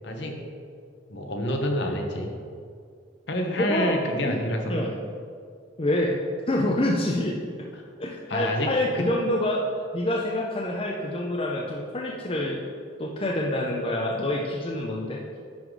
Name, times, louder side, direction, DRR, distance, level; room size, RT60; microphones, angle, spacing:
voice 1, 0.0-0.4 1.1-2.3 3.3-4.8 8.3-9.1, left 1 dB, 60° left, 3 dB, 0.9 m, -28 dB
voice 2, 3.6-4.4 4.7-5.0 5.8-6.2 6.5-7.4 8.0-9.6 9.9-12.6 13.0-15.2, left 1 dB, 25° left, -1 dB, 0.5 m, -26 dB
10.0 x 3.9 x 4.7 m, 2.2 s
head